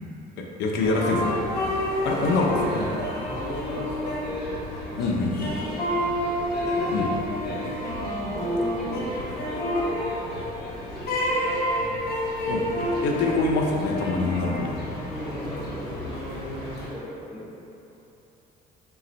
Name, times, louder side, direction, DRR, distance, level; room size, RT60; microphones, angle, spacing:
voice 1, 0.6-1.4 2.0-2.9 5.0-5.5 6.9-7.1 12.5-14.7, left 3 dB, 90° left, 0 dB, 0.6 m, -25 dB
sound 1, 0.8-16.9, equal, 65° left, 0.9 m, -29 dB
voice 2, 2.6-7.1 7.4-7.7 8.3-12.0 12.3-12.4 15.1-17.5, equal, ahead, -12 dB, 1.5 m, -37 dB
4.1 x 2.3 x 3.8 m, 3.0 s
cardioid pair, 110°, 17 cm